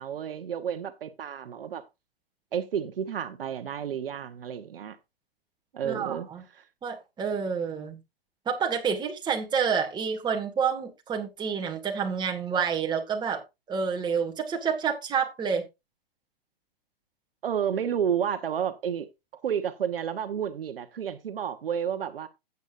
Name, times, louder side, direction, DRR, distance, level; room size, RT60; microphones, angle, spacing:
voice 1, 0.0-1.8 2.5-5.0 5.7-6.3 6.5-6.6 17.4-19.1 19.4-22.3, right 8 dB, 70° right, 1.2 m, -31 dB
voice 2, 5.8-6.4 6.8-8.0 8.5-13.4 13.7-15.6, right 6 dB, 15° right, 1.8 m, -28 dB
13.5 x 8.2 x 2.5 m
hypercardioid pair, 130°, 29 cm